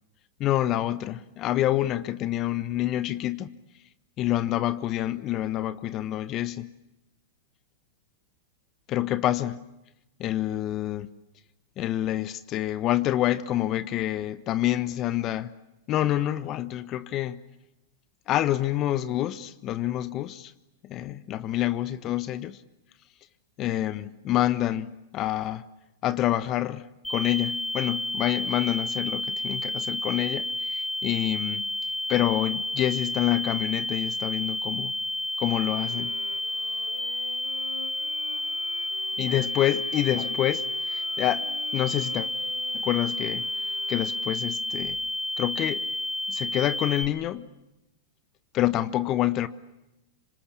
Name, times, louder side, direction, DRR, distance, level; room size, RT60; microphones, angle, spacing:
voice 1, 0.4-3.5 4.2-6.7 8.9-9.6 10.2-11.1 11.8-15.5 15.9-17.4 18.3-20.5 20.8-22.6 23.6-25.6 26.0-31.6 32.1-34.9 35.4-36.2 39.2-41.5 41.7-42.3 42.7-43.5 43.9-45.0 45.4-45.8 46.3-47.5 48.5-49.5, left 13 dB, 40° left, 1.2 m, -27 dB
sound 1, 27.0-47.0, left 1 dB, 5° left, 4.5 m, -31 dB
sound 2, 35.4-44.6, left 4 dB, 90° left, 1.7 m, -45 dB
26.0 x 26.0 x 8.4 m
hypercardioid pair, 105°, 0 cm